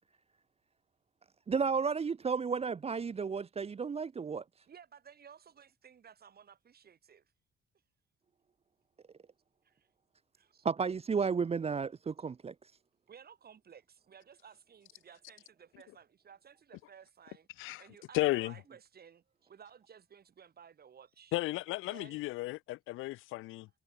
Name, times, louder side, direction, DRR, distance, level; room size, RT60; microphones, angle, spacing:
voice 1, 1.5-4.4 10.6-12.5, right 5 dB, 30° right, 0.8 m, -32 dB
voice 2, 4.6-7.3 9.6-9.9 10.4-10.6 13.1-17.5 17.8-21.4 21.8-22.2, right 7 dB, 50° right, 7.3 m, -56 dB
voice 3, 18.1-18.5 21.3-23.7, left 19 dB, 90° left, 0.5 m, -34 dB
cardioid pair, 90°, 20 cm